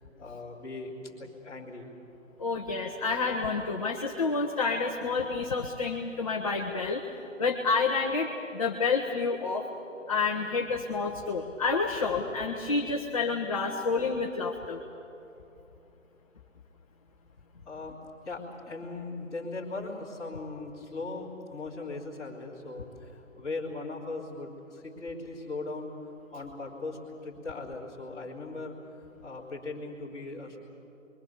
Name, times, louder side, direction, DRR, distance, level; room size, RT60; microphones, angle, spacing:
voice 1, 0.0-1.9 17.6-25.9 26.3-28.8 29.2-30.6, left 3 dB, 10° left, -10 dB, 3.3 m, -39 dB
voice 2, 2.4-7.0 7.4-9.7 10.1-14.8, left 4 dB, 25° left, 0 dB, 1.3 m, -29 dB
29.0 x 23.0 x 7.0 m, 2.9 s
figure-of-eight pair, 155°, 40 cm